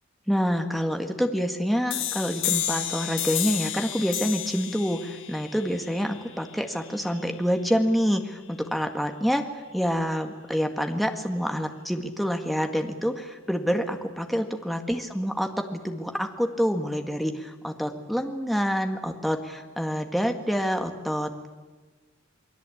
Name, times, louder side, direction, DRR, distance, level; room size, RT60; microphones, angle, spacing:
voice 1, 0.3-9.4 9.7-21.5, equal, ahead, 4 dB, 1.8 m, -27 dB
sound 1, 1.9-7.3, left 12 dB, 65° left, 2.1 m, -32 dB
28.5 x 21.0 x 8.5 m, 1.3 s
head